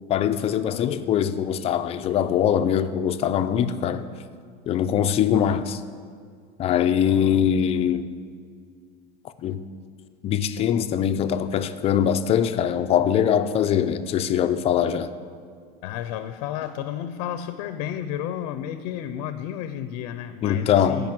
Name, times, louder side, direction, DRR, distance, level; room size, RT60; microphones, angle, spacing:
voice 1, 0.1-4.1 4.7-5.8 6.6-8.1 9.4-9.6 10.2-15.1 20.4-21.1, left 9 dB, 30° left, 10 dB, 0.5 m, -22 dB
voice 2, 15.8-21.1, left 10 dB, 85° left, 11 dB, 0.7 m, -32 dB
15.5 x 5.3 x 9.2 m, 2.1 s
cardioid pair, 165°, 20 cm